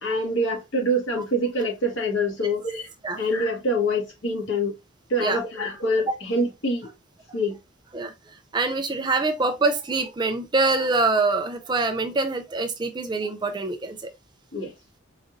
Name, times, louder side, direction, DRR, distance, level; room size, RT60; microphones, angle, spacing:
voice 1, 0.0-2.9 3.2-4.8 5.1-6.9 7.3-7.6 14.5-14.7, equal, 70° left, 1.5 m, -25 dB
voice 2, 8.5-14.1, right 3 dB, 20° right, 0.4 m, -24 dB
4.8 x 2.6 x 2.5 m
head